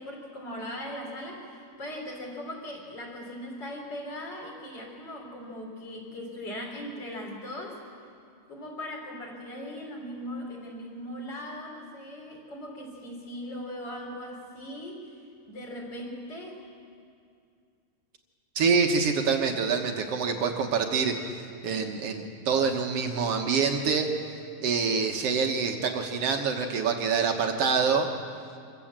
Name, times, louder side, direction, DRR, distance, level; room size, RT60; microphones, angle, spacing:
voice 1, 0.0-7.8 8.5-15.2 15.5-16.7, equal, 35° left, 0 dB, 4.0 m, -39 dB
voice 2, 18.5-21.1 21.6-24.1 24.6-28.1, right 5 dB, 60° right, 3 dB, 1.8 m, -26 dB
26.0 x 15.5 x 7.4 m, 2.3 s
omnidirectional pair, 3.8 m